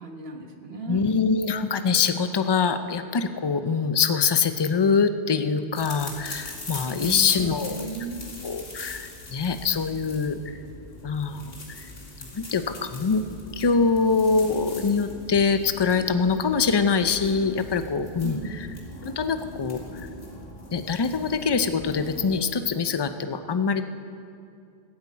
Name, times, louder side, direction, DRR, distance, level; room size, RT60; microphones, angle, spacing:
voice 1, 0.0-1.1 7.0-8.4 18.2-18.6, right 4 dB, 65° right, 4 dB, 1.5 m, -36 dB
voice 2, 0.9-7.9 8.4-10.6 11.0-11.9 12.3-13.2 13.5-18.7 19.0-20.1 20.7-23.8, left 5 dB, 30° left, 10 dB, 0.5 m, -24 dB
sound 1, 5.7-22.4, left 2 dB, 60° left, 2.3 m, -40 dB
15.5 x 8.1 x 8.5 m, 2.4 s
omnidirectional pair, 1.1 m